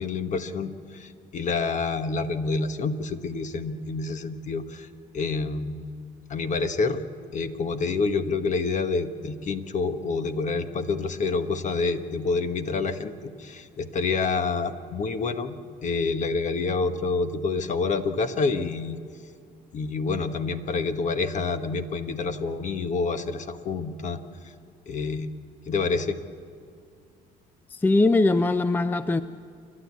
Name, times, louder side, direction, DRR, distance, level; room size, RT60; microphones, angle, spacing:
voice 1, 0.0-4.9 5.1-5.8 6.3-7.0 7.3-15.6 15.8-19.0 19.7-24.2 24.9-25.3 25.7-26.2, left 4 dB, 45° left, 9 dB, 1.3 m, -28 dB
voice 2, 27.7-29.2, left 2 dB, 10° left, 12 dB, 0.5 m, -21 dB
29.0 x 12.0 x 8.4 m, 2.4 s
cardioid pair, 110°, 17 cm